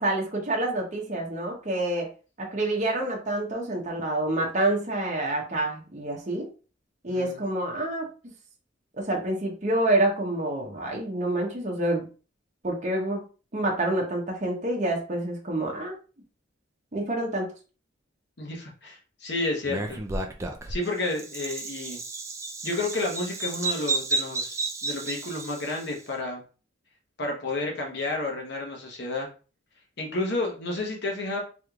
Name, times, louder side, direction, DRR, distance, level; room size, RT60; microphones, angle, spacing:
voice 1, 0.0-2.1 2.4-6.5 7.0-8.1 9.0-12.1 12.6-13.2 13.5-15.9 16.9-17.5, right 1 dB, 35° right, -1 dB, 0.8 m, -27 dB
voice 2, 7.1-7.4 18.4-20.0 20.7-22.0 22.6-26.4 27.2-29.3 30.0-31.4, left 2 dB, 55° left, 1 dB, 1.0 m, -31 dB
Bird vocalization bird call bird song, 19.6-25.9, right 3 dB, 15° right, 0.3 m, -32 dB
3.5 x 3.1 x 2.3 m, 0.35 s
head